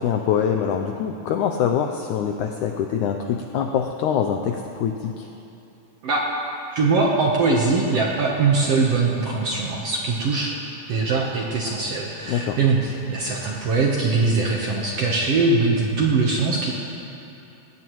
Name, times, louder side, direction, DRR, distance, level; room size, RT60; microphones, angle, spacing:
voice 1, 0.0-5.3 12.3-12.6, left 8 dB, 85° left, 4 dB, 1.7 m, -24 dB
voice 2, 6.7-10.5 10.9-16.7, right 3 dB, 65° right, -2 dB, 1.6 m, -21 dB
20.5 x 17.5 x 3.1 m, 2.8 s
omnidirectional pair, 4.2 m